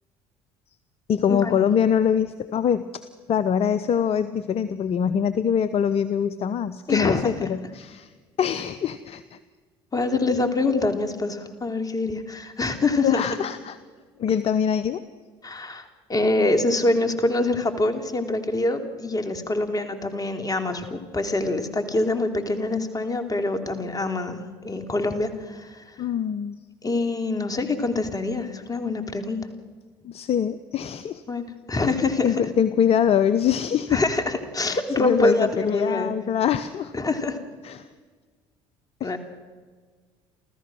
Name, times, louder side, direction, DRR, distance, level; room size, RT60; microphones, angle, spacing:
voice 1, 1.1-3.0 3.3-8.1 8.4-9.4 13.0-13.8 14.2-15.0 26.0-26.6 30.0-31.2 32.2-34.0 34.6-36.9 37.6-37.9 39.0-39.2, left 8 dB, 50° left, 13 dB, 0.8 m, -24 dB
voice 2, 6.9-7.5 9.9-13.3 15.4-25.8 26.8-29.4 31.3-32.3 33.9-36.1 36.9-37.4 39.0-39.2, left 2 dB, 25° left, 7 dB, 2.9 m, -25 dB
29.5 x 14.0 x 6.3 m, 1.5 s
hypercardioid pair, 65°, 13 cm